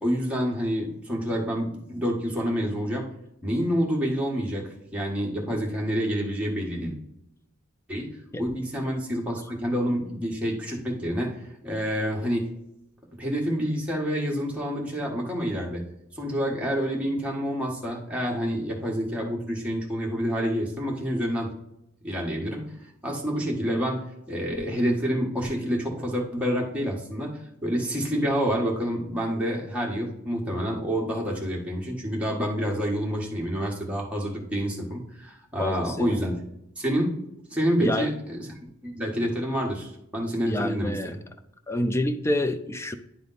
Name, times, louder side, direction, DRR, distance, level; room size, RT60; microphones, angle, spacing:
voice 1, 0.0-3.1 3.4-6.9 7.9-8.1 8.4-11.3 11.6-12.5 13.2-15.8 16.1-21.5 22.0-22.6 23.0-36.4 36.8-37.1 37.5-38.5 38.8-41.2, equal, 5° right, -3 dB, 1.4 m, -28 dB
voice 2, 35.6-36.2 37.8-38.1 40.5-41.2 41.7-42.9, left 1 dB, 10° left, 9 dB, 0.4 m, -27 dB
10.0 x 3.4 x 4.0 m, 0.82 s
head